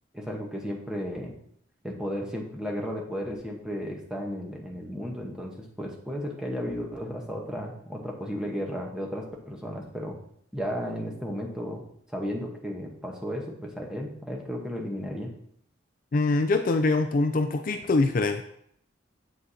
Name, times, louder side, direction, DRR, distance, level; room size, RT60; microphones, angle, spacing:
voice 1, 0.1-1.4 1.8-10.2 10.5-15.3, equal, 5° right, 0 dB, 1.0 m, -34 dB
voice 2, 16.1-18.4, left 3 dB, 45° left, 7 dB, 0.4 m, -24 dB
7.6 x 6.2 x 2.8 m, 0.69 s
head